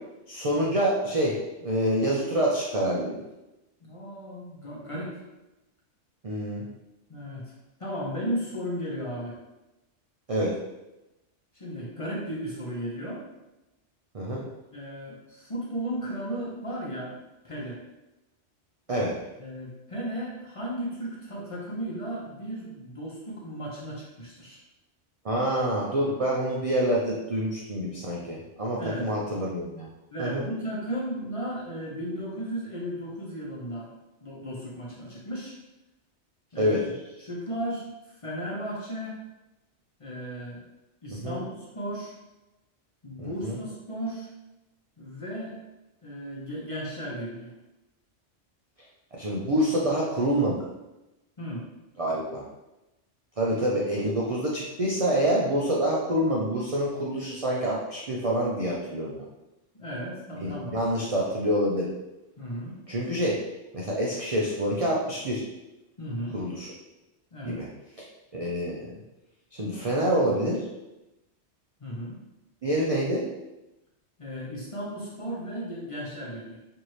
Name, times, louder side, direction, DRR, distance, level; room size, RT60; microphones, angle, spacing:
voice 1, 0.3-3.2 6.2-6.7 10.3-10.5 14.1-14.4 18.9-19.2 25.2-29.9 30.2-30.4 36.6-36.8 41.1-41.4 43.2-43.6 49.1-50.7 52.0-52.4 53.4-59.2 60.3-61.9 62.9-63.4 63.7-65.4 66.3-66.7 67.5-67.7 68.0-68.1 68.3-69.0 69.5-70.6 72.6-73.3, right 1 dB, 50° right, -4 dB, 0.4 m, -27 dB
voice 2, 3.8-5.2 7.1-7.5 7.8-9.4 11.5-13.2 14.7-17.1 17.4-17.8 19.4-24.6 28.8-29.1 30.1-33.9 34.2-35.6 36.5-37.9 38.2-39.2 40.0-40.6 41.0-42.1 43.0-44.3 45.0-45.6 46.0-47.5 51.4-51.7 54.0-54.1 59.7-60.8 62.4-62.8 66.0-66.4 67.3-67.6 71.8-72.2 74.2-76.6, equal, 35° left, -4 dB, 0.7 m, -35 dB
4.5 x 2.6 x 3.1 m, 0.99 s
omnidirectional pair, 1.2 m